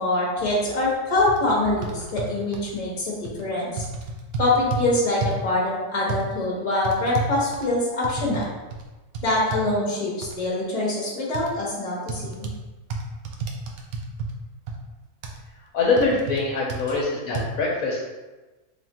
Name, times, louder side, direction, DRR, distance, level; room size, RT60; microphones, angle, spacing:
voice 1, 0.0-3.8 4.4-8.4 9.2-12.5, left 2 dB, 25° left, -5 dB, 1.0 m, -24 dB
sound 1, 0.9-1.0 1.3-1.4 1.8-2.7 3.3-3.4 3.8-4.8 5.2-5.5 6.1-6.2 6.8-8.5 8.7-8.8 9.1-9.6 10.2-10.3 11.3-11.5 12.1-12.6 12.9-14.3 14.7-14.8 15.2-15.4 16.0-16.4 16.7-16.8 17.3-17.4, right 4 dB, 75° right, 1.0 m, -31 dB
voice 2, 15.6-18.1, left 3 dB, 65° left, -3 dB, 1.1 m, -24 dB
3.7 x 2.4 x 4.2 m, 1.2 s
omnidirectional pair, 1.6 m